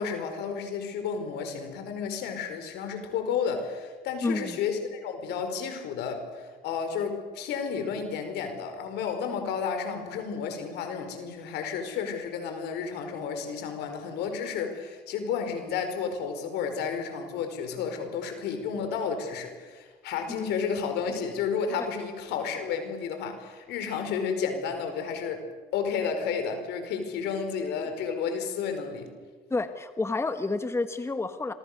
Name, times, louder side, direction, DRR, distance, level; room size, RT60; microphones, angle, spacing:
voice 1, 0.0-25.5 25.7-29.1, left 6 dB, 85° left, 7 dB, 5.0 m, -32 dB
voice 2, 4.2-4.6 29.5-31.5, left 3 dB, 15° left, 9 dB, 1.4 m, -29 dB
27.5 x 24.5 x 6.8 m, 1.4 s
cardioid pair, 110°, 17 cm